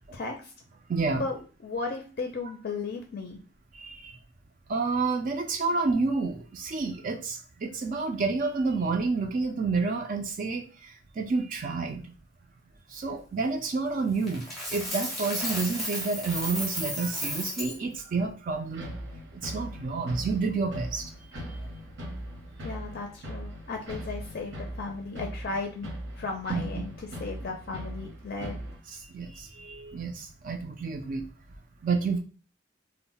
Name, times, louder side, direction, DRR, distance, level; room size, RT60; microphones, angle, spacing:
voice 1, 0.1-0.5 1.2-3.4 22.6-25.9 26.2-28.6, left 3 dB, 50° left, 2 dB, 0.4 m, -35 dB
voice 2, 0.9-1.3 3.7-4.2 4.7-12.2 12.9-19.0 19.4-21.1 26.5-26.6 28.4-28.5 28.9-31.3 31.8-32.2, right 4 dB, 45° right, 3 dB, 0.4 m, -29 dB
Coin (dropping), 14.3-17.8, equal, ahead, 0.6 m, -33 dB
sound 1, 18.7-28.8, equal, 80° right, 0.9 m, -40 dB
2.1 x 2.1 x 3.7 m, 0.36 s
head